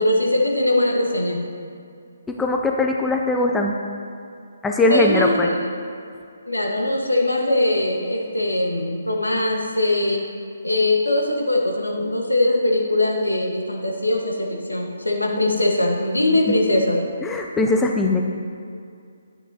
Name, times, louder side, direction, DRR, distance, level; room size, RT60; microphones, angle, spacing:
voice 1, 0.0-1.4 4.9-5.5 6.5-10.2 10.6-17.0, left 1 dB, 85° left, 0 dB, 1.4 m, -21 dB
voice 2, 2.3-3.8 4.6-5.5 17.2-18.2, left 2 dB, 10° left, 1 dB, 0.4 m, -20 dB
10.0 x 8.9 x 2.8 m, 2.3 s
figure-of-eight pair, 140°, 0 cm